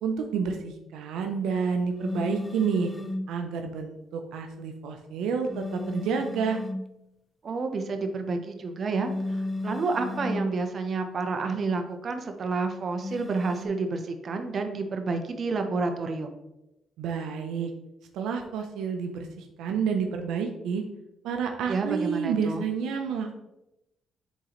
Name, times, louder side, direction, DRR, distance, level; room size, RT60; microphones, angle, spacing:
voice 1, 0.0-2.9 3.3-6.6 17.0-17.7 18.1-20.8 21.2-23.3, right 6 dB, 85° right, 4 dB, 0.6 m, -29 dB
sound 1, 2.0-3.3 5.5-6.9 9.0-10.6 13.0-13.7, left 2 dB, 10° left, 0.5 m, -34 dB
voice 2, 7.4-16.3 21.7-22.6, right 4 dB, 50° right, 6 dB, 0.8 m, -30 dB
8.1 x 3.8 x 3.0 m, 0.90 s
cardioid pair, 90°, 0 cm